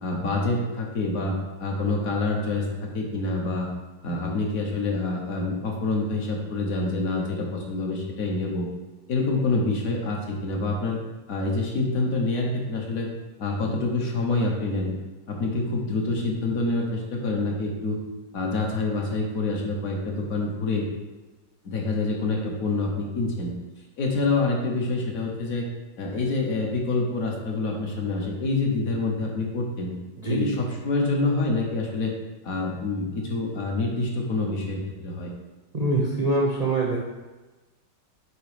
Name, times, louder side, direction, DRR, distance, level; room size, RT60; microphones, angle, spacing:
voice 1, 0.0-3.7 4.0-8.7 9.1-11.0 11.3-13.1 13.4-14.9 15.3-18.0 18.3-20.8 21.6-23.5 24.0-25.7 26.0-29.9 30.3-32.1 32.4-35.3, left 3 dB, 55° left, 0 dB, 1.4 m, -26 dB
voice 2, 30.2-30.6 35.7-37.0, right 2 dB, 45° right, -3 dB, 0.5 m, -24 dB
8.0 x 3.1 x 4.9 m, 1.2 s
omnidirectional pair, 1.9 m